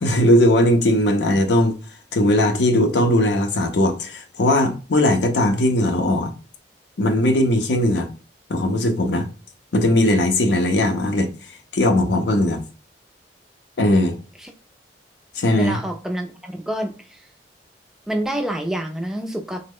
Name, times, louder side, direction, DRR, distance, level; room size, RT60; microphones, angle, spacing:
voice 1, 0.0-1.8 2.1-6.3 7.0-8.1 8.5-9.3 9.7-11.3 11.7-12.6 13.8-14.2 15.4-15.8, left 1 dB, 75° left, 0.5 m, -18 dB
voice 2, 15.6-17.2 18.1-19.6, right 1 dB, 5° right, 0.3 m, -27 dB
3.0 x 2.0 x 3.5 m
head